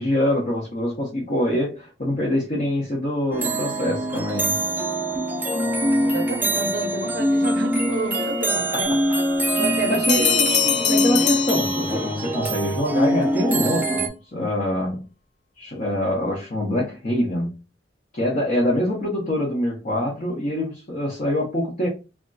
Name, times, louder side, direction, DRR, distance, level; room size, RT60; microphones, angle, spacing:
voice 1, 0.0-4.7 8.7-9.0 9.9-10.3 10.9-14.1 14.3-15.0 15.6-17.5 18.1-21.9, left 1 dB, 45° left, 0.7 m, -24 dB
sound 1, 3.3-14.1, right 1 dB, 10° right, 0.4 m, -23 dB
voice 2, 6.0-8.9 9.5-11.3, right 2 dB, 60° right, 0.5 m, -30 dB
Bell, 10.1-12.3, left 10 dB, 70° left, 0.3 m, -23 dB
2.3 x 2.1 x 3.8 m
head